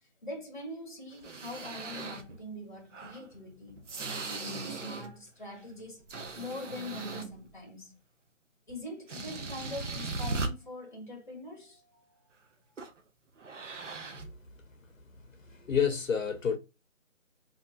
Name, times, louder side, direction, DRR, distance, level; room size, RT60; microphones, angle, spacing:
voice 1, 0.0-3.8 4.2-6.0 6.3-7.9 8.7-12.3, left 1 dB, 35° left, 0.7 m, -43 dB
sound 1, 1.1-2.4 2.9-5.2 5.6-7.5 8.7-8.8 9.1-10.5 12.8-13.0 13.4-14.3, right 3 dB, 60° right, 0.5 m, -38 dB
voice 2, 15.5-16.6, left 7 dB, 70° left, 0.6 m, -29 dB
2.8 x 2.3 x 2.2 m
figure-of-eight pair, 170°, 41 cm